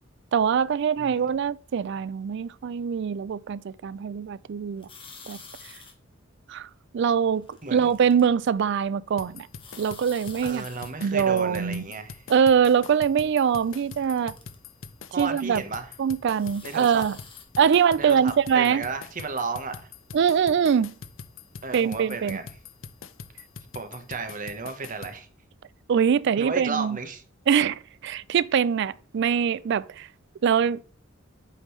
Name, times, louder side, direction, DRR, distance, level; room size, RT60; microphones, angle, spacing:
voice 1, 0.3-4.9 5.3-5.4 6.5-6.7 6.9-9.5 9.8-10.6 11.0-11.9 12.3-14.3 15.2-15.6 16.0-17.2 17.6-18.8 20.1-20.9 21.7-22.4 25.9-27.0 27.5-30.1 30.4-30.8, right 7 dB, 65° right, 0.4 m, -23 dB
sound 1, 4.8-5.9 7.2-8.2 9.6-10.9 13.2-14.6 16.3-17.4, left 4 dB, 25° left, 1.4 m, -48 dB
voice 2, 7.6-7.9 10.4-12.2 15.1-15.9 16.6-17.0 18.0-19.9 21.6-22.5 23.7-25.3 26.4-27.2, right 4 dB, 45° right, 1.1 m, -33 dB
sound 2, 9.2-25.2, left 5 dB, 75° left, 0.6 m, -43 dB
8.5 x 5.3 x 3.2 m
head